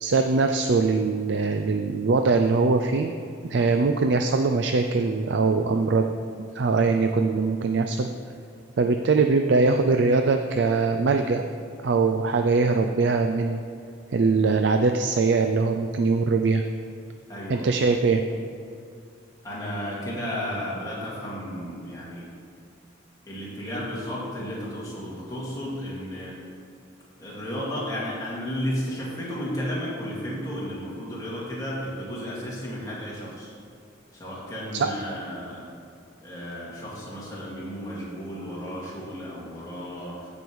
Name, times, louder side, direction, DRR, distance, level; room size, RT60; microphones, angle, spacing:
voice 1, 0.0-3.1 3.4-6.1 6.6-8.1 8.8-11.4 11.8-13.6 14.1-16.6 17.5-18.2 34.7-34.9, right 4 dB, 65° right, 6 dB, 0.4 m, -22 dB
voice 2, 17.3-17.7 19.4-22.3 23.3-26.4 27.2-33.5 34.1-35.7 36.2-40.3, equal, 20° left, -7 dB, 2.3 m, -33 dB
14.0 x 5.3 x 4.7 m, 2.3 s
head